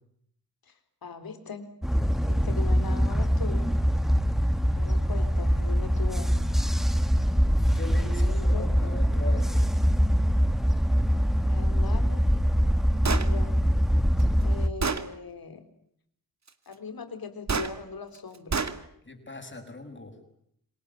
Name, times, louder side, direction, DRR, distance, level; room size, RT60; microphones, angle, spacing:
voice 1, 1.0-1.7 2.2-3.7 4.7-6.6 8.2-8.7 11.5-12.3 13.1-13.7 14.4-15.6 16.7-18.7, left 5 dB, 75° left, 10 dB, 4.0 m, -40 dB
sound 1, 1.8-14.7, equal, ahead, 1.9 m, -23 dB
voice 2, 7.7-9.7 19.1-20.1, left 2 dB, 30° left, 5 dB, 7.4 m, -40 dB
Gunshot gunfire, 13.0-13.3 14.2-14.3 14.8-15.1 17.5-17.7 18.5-18.8, right 4 dB, 45° right, 2.3 m, -27 dB
28.0 x 19.0 x 9.9 m, 0.70 s
cardioid pair, 70°, 36 cm